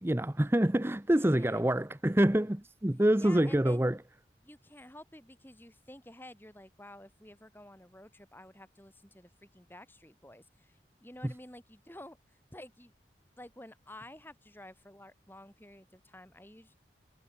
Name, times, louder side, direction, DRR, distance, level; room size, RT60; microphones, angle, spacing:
voice 1, 0.0-4.0 11.2-11.3, right 1 dB, 15° right, 0.7 m, -26 dB
voice 2, 1.2-1.7 3.2-3.9 4.4-12.9 13.4-16.8, left 1 dB, 10° left, 5.6 m, -51 dB
head